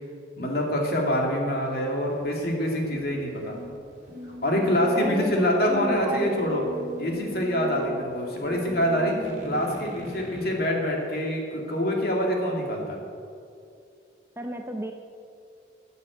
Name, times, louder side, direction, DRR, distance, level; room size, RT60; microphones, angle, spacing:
voice 1, 0.4-3.6 4.4-6.6 7.0-9.2 9.4-13.0, equal, 55° left, 0 dB, 2.5 m, -25 dB
sound 1, 2.1-10.5, equal, 40° right, 3.0 m, -42 dB
voice 2, 4.9-6.3 14.4-14.9, equal, 15° right, 4 dB, 0.7 m, -32 dB
13.0 x 8.4 x 8.0 m, 2.5 s
head